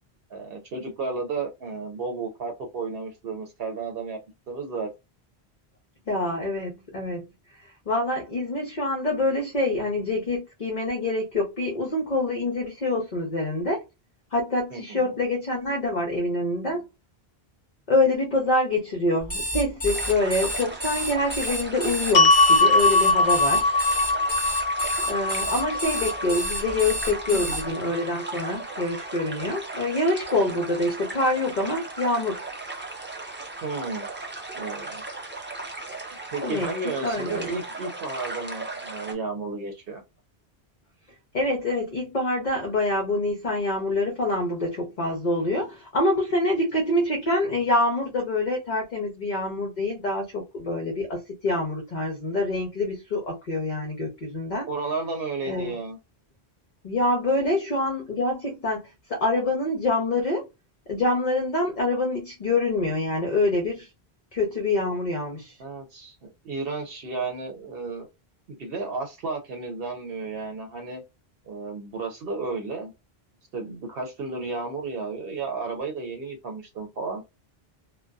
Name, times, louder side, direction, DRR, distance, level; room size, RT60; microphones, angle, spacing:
voice 1, 0.3-4.2 4.5-4.9 14.7-15.1 27.3-27.6 33.6-34.1 34.5-35.0 36.3-40.0 54.7-56.0 65.6-68.1 68.5-71.0 71.5-72.9 73.5-77.2, right 4 dB, 70° right, 0.8 m, -33 dB
voice 2, 6.1-7.2 7.9-13.8 14.3-16.8 17.9-23.7 25.1-32.5 36.4-37.5 41.3-54.7 55.4-55.7 56.8-58.8 59.1-60.5 60.9-63.9 64.3-65.6, left 2 dB, 50° left, 0.8 m, -26 dB
Alarm, 19.2-27.6, equal, 15° left, 1.0 m, -30 dB
sound 1, 19.8-39.1, right 3 dB, 20° right, 0.3 m, -37 dB
sound 2, 22.1-28.4, left 2 dB, 80° left, 0.8 m, -22 dB
2.5 x 2.2 x 2.2 m
omnidirectional pair, 1.1 m